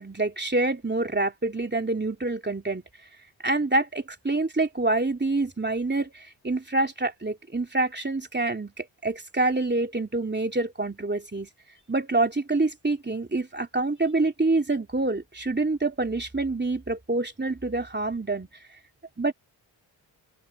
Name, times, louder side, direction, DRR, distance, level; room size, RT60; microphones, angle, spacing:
voice 1, 0.0-2.8 3.4-11.5 11.9-18.5 19.2-19.3, right 2 dB, 20° right, 3.0 m, -26 dB
open air
cardioid pair, 50°, 47 cm